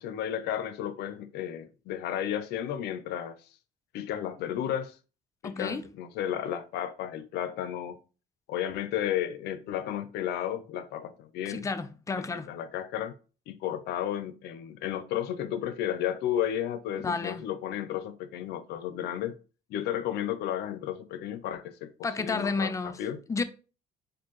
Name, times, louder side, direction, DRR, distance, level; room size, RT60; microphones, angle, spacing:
voice 1, 0.0-3.4 3.9-5.0 5.4-8.0 8.5-11.7 12.1-13.1 13.5-19.3 19.7-23.2, left 10 dB, 80° left, 0.5 m, -33 dB
voice 2, 5.4-5.8 11.5-12.5 17.0-17.4 22.0-23.0 23.3-23.4, left 4 dB, 20° left, 0.4 m, -31 dB
4.3 x 2.6 x 3.0 m
cardioid pair, 110°, 17 cm